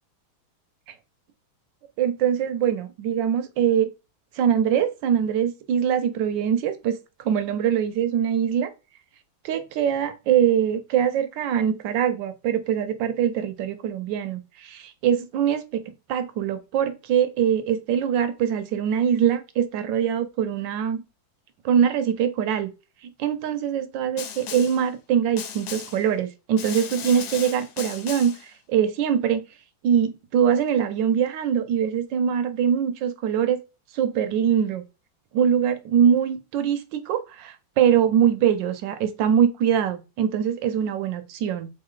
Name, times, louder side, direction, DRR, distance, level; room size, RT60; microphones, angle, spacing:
voice 1, 2.0-3.9 4.4-7.0 7.2-8.7 9.4-21.0 21.6-22.7 23.2-29.4 29.8-33.6 33.9-34.8 35.3-41.7, right 8 dB, 75° right, 1.2 m, -23 dB
Snare drum, 24.2-24.9 25.4-26.1 26.6-28.5, left 8 dB, 85° left, 1.4 m, -36 dB
3.6 x 3.2 x 3.7 m
omnidirectional pair, 2.2 m